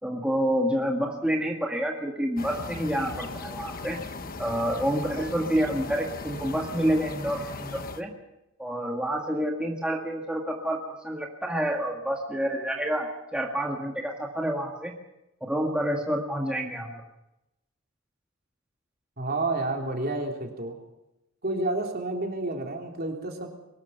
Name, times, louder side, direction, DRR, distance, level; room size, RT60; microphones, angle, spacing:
voice 1, 0.0-4.0 4.4-8.1 8.6-14.9 15.4-17.0, equal, 5° right, -1 dB, 1.9 m, -28 dB
sound 1, 2.4-8.0, left 3 dB, 40° left, 1.2 m, -38 dB
voice 2, 19.2-20.8 21.4-23.5, right 2 dB, 45° right, 1 dB, 3.6 m, -30 dB
23.0 x 20.0 x 5.8 m, 0.92 s
head